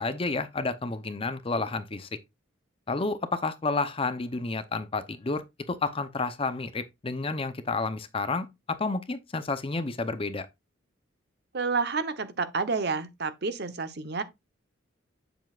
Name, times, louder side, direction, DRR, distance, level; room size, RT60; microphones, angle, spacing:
voice 1, 0.0-2.1 2.9-10.5, left 3 dB, 30° left, 0.7 m, -30 dB
voice 2, 11.5-14.2, right 4 dB, 55° right, 0.9 m, -29 dB
7.9 x 7.0 x 2.4 m
head